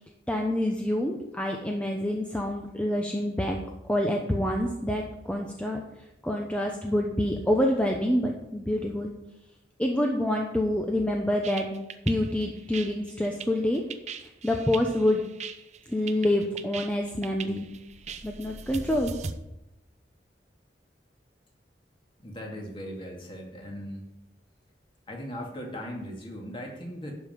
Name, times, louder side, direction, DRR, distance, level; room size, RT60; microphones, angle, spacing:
voice 1, 0.3-3.6 3.9-5.8 6.2-9.1 9.8-13.8 14.2-15.2 15.9-17.7 18.2-19.1, left 1 dB, 5° left, 1 dB, 0.9 m, -27 dB
sound 1, 11.4-19.3, right 5 dB, 40° right, 0.6 m, -40 dB
voice 2, 22.2-24.1 25.1-27.1, equal, 30° left, 0 dB, 2.2 m, -38 dB
11.5 x 5.5 x 7.7 m, 0.91 s
head